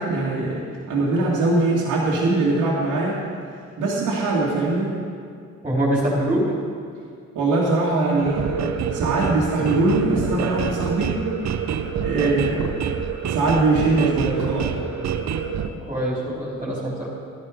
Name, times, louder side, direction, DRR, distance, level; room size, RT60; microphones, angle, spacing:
voice 1, 0.0-3.2 3.8-4.9 7.3-11.2 12.0-12.7 13.3-14.7, right 2 dB, 85° right, -6 dB, 2.3 m, -22 dB
voice 2, 5.6-6.5 15.6-17.1, right 1 dB, 20° right, -6 dB, 3.8 m, -24 dB
sound 1, 8.2-15.7, right 7 dB, 60° right, 0.9 m, -26 dB
14.0 x 11.0 x 5.1 m, 2.2 s
cardioid pair, 90°, 30 cm